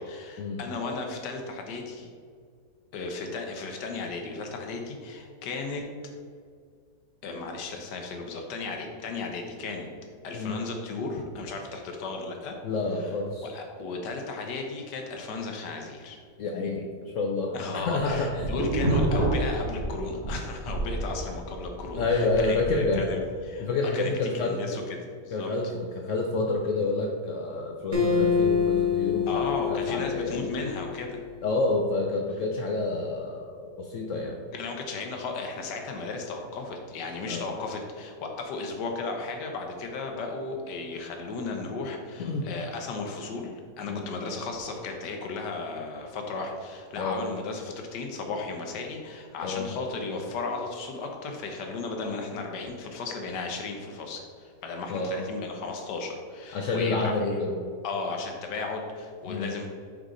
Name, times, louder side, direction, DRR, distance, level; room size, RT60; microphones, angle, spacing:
voice 1, 0.0-2.1 2.9-5.8 7.2-9.9 10.2-12.6 13.0-13.1 13.4-16.2 17.5-23.7 23.9-25.5 29.3-31.2 34.5-57.4 57.8-59.7, left 3 dB, 85° left, 3 dB, 1.5 m, -35 dB
voice 2, 12.6-13.5 16.4-18.4 22.0-23.2 23.6-24.8 25.3-29.3 29.7-30.5 31.4-34.5 37.3-37.5 42.2-42.5 43.9-44.1 47.0-47.2 49.4-49.7 54.9-55.2 56.5-57.6 59.2-59.5, left 3 dB, 70° left, 1 dB, 0.8 m, -28 dB
sound 1, 18.0-20.3 20.7-23.0, right 1 dB, 15° left, 1.5 m, -28 dB
Acoustic guitar, 27.9-31.3, left 6 dB, 25° right, 0.9 m, -26 dB
5.3 x 4.7 x 3.8 m, 2.1 s
omnidirectional pair, 1.8 m